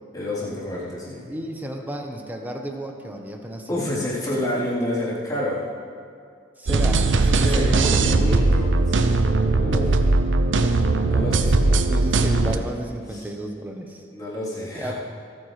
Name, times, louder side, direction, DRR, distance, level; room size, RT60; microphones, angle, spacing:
voice 1, 0.1-1.3 3.7-5.6 7.4-9.2 9.5-10.0 11.0-11.5 13.1-13.3 14.1-14.9, left 1 dB, 20° left, -9 dB, 3.6 m, -28 dB
voice 2, 1.3-4.1 4.5-4.7 6.6-8.2 11.6-14.0 14.7-14.9, right 1 dB, 10° right, 3 dB, 1.0 m, -33 dB
sound 1, 6.7-12.6, right 3 dB, 80° right, 0.7 m, -19 dB
26.0 x 8.9 x 3.3 m, 2.3 s
head